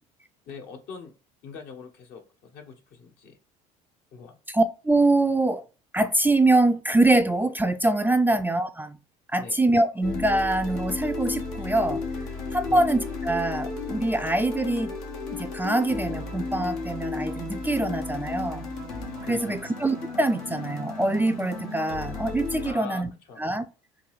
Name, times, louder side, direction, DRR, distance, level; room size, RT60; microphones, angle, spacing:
voice 1, 0.5-1.1 1.4-3.4 4.1-4.4 8.3-8.4 9.3-9.5 12.6-12.8 19.2-19.6 22.6-23.4, left 5 dB, 65° left, 1.0 m, -43 dB
voice 2, 4.5-5.6 5.9-9.0 9.3-12.0 12.5-14.9 15.4-18.7 19.3-23.1 23.4-23.7, right 2 dB, 10° right, 0.3 m, -24 dB
sound 1, 10.0-22.7, left 3 dB, 90° left, 1.1 m, -33 dB
3.8 x 2.6 x 3.1 m
supercardioid pair, 80°, 17 cm